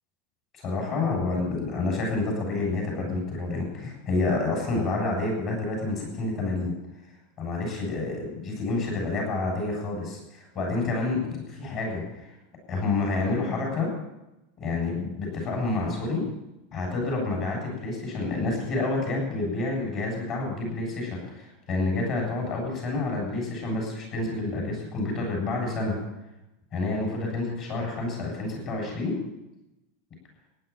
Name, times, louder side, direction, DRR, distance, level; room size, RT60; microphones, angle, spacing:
voice 1, 0.6-6.7 7.4-12.3 12.7-13.9 14.6-16.2 16.7-26.0 26.7-29.1, left 3 dB, 35° left, 0 dB, 7.7 m, -29 dB
15.5 x 10.5 x 7.2 m, 0.94 s
supercardioid pair, 170°, 0 cm